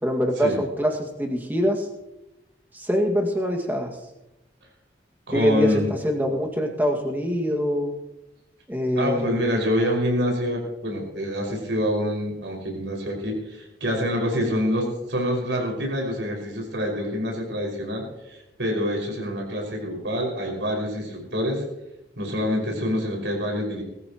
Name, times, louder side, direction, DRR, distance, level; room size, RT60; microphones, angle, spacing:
voice 1, 0.0-1.8 2.7-3.9 5.3-5.7 6.0-7.9 8.7-9.3, equal, 10° right, 1 dB, 2.0 m, -24 dB
voice 2, 5.3-5.9 9.0-21.6 22.2-23.8, equal, 80° right, 0 dB, 5.7 m, -26 dB
20.5 x 14.5 x 3.0 m, 0.94 s
head